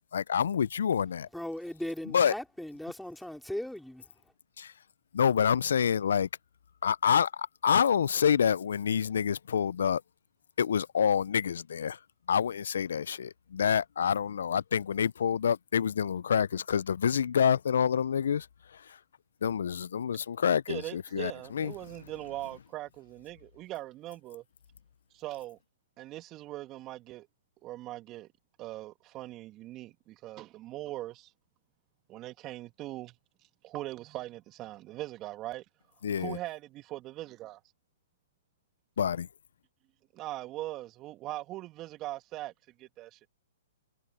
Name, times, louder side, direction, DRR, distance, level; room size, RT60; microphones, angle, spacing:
voice 1, 0.1-1.3 2.1-2.3 4.6-4.7 5.1-6.3 6.8-10.0 10.6-12.0 12.3-19.0 19.4-21.7 36.0-36.4 39.0-39.3, left 7 dB, 70° left, 0.4 m, -27 dB
voice 2, 1.3-4.1, left 1 dB, ahead, 3.4 m, -38 dB
voice 3, 20.7-24.4 25.1-25.6 26.0-27.3 27.6-28.3 28.6-31.3 32.1-33.1 33.6-35.6 36.2-37.6 40.1-42.5 42.8-43.3, right 16 dB, 30° right, 2.0 m, -40 dB
hypercardioid pair, 125°, 0 cm